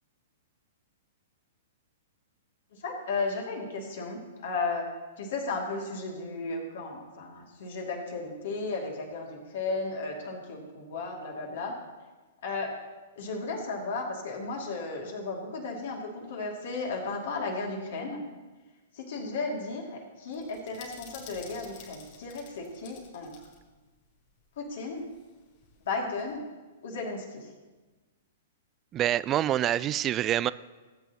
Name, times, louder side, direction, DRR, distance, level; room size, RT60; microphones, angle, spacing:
voice 1, 2.7-4.9 5.2-11.8 12.4-12.8 13.2-18.2 18.9-23.3 24.6-25.1 25.8-26.4 26.8-27.5, left 3 dB, 55° left, 0 dB, 2.4 m, -34 dB
sound 1, 20.3-23.6 23.8-23.9 25.0-26.3, left 5 dB, 40° left, 4.4 m, -51 dB
voice 2, 28.9-30.5, right 12 dB, 25° right, 18 dB, 0.3 m, -26 dB
18.5 x 8.8 x 2.9 m, 1.2 s
figure-of-eight pair, 110°, 0 cm